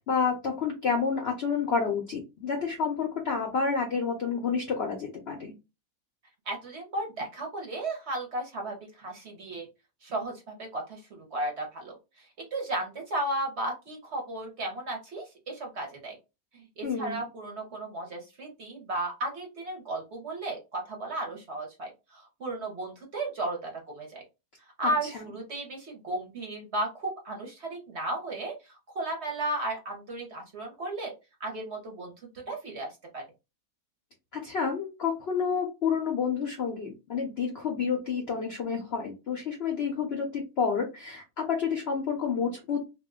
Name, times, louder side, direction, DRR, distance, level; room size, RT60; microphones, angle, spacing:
voice 1, 0.0-5.5 16.8-17.2 24.8-25.3 34.3-42.8, left 6 dB, 65° left, 2 dB, 0.6 m, -29 dB
voice 2, 6.5-9.7 10.0-16.2 16.5-24.2 24.8-31.1 31.4-32.1 32.5-33.2, right 2 dB, 55° right, 1 dB, 0.8 m, -34 dB
2.6 x 2.1 x 3.5 m, 0.27 s
omnidirectional pair, 1.7 m